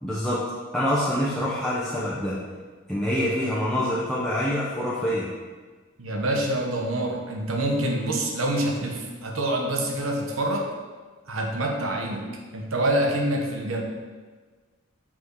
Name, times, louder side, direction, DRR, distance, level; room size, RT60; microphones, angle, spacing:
voice 1, 0.0-0.4 0.7-2.4 2.9-5.3, equal, ahead, -9 dB, 0.9 m, -26 dB
voice 2, 6.0-10.7 11.3-13.8, right 1 dB, 90° right, 1 dB, 1.0 m, -26 dB
5.8 x 4.8 x 4.7 m, 1.4 s
head